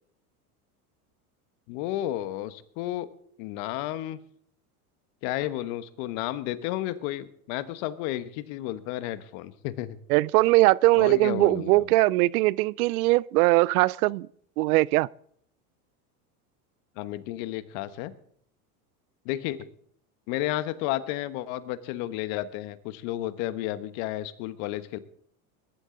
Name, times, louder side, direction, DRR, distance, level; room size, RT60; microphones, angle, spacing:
voice 1, 1.7-3.1 3.4-4.2 5.2-10.0 10.9-11.9 17.0-18.1 19.2-19.7 20.3-25.0, left 14 dB, 65° left, 1.3 m, -32 dB
voice 2, 10.1-14.3 14.6-15.1, right 20 dB, 75° right, 0.5 m, -21 dB
21.0 x 12.0 x 3.9 m
supercardioid pair, 105°, 44 cm